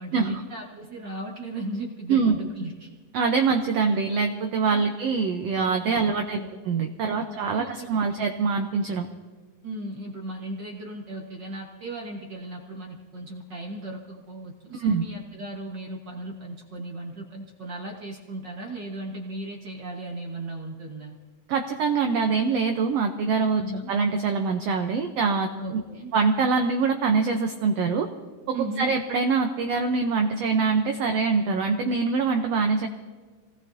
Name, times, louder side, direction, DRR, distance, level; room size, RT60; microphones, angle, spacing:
voice 1, 0.0-2.9 3.9-4.0 4.6-4.9 5.9-6.5 7.0-8.1 9.6-21.1 23.6-23.9 25.6-26.1 28.5-29.0, right 2 dB, 50° right, 0 dB, 1.4 m, -36 dB
voice 2, 3.1-6.4 6.6-9.1 14.7-15.0 21.5-23.6 23.9-25.5 26.1-28.1 28.5-32.9, right 5 dB, 70° right, 4 dB, 1.5 m, -24 dB
27.0 x 18.5 x 2.7 m, 1.4 s
omnidirectional pair, 3.8 m